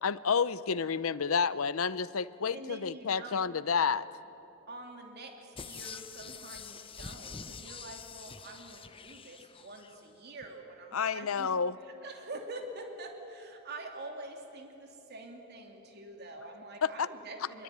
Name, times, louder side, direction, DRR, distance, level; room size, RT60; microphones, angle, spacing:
voice 1, 0.0-4.1 10.9-11.7 16.8-17.1, left 6 dB, 85° left, 16 dB, 0.7 m, -30 dB
voice 2, 2.5-3.6 4.7-11.5 11.8-17.6, right 2 dB, 50° right, 3 dB, 3.0 m, -46 dB
sound 1, 5.6-10.0 10.4-10.5, left 5 dB, 25° left, 0.8 m, -46 dB
24.5 x 23.0 x 9.4 m, 2.9 s
head